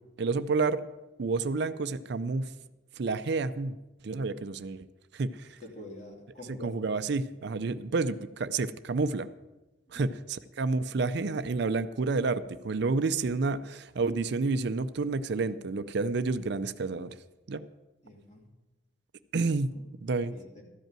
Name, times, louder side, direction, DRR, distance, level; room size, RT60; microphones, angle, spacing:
voice 1, 0.2-0.8 1.2-2.5 3.0-3.8 4.0-4.8 5.1-5.6 6.6-9.3 9.9-17.1 17.5-17.7 19.3-19.8 20.0-20.4, right 3 dB, 60° right, 13 dB, 0.4 m, -29 dB
voice 2, 5.6-6.8 9.9-10.2 18.0-18.5 19.4-19.9 20.3-20.6, left 1 dB, 40° left, 0 dB, 2.6 m, -47 dB
13.5 x 5.4 x 8.9 m, 1.1 s
head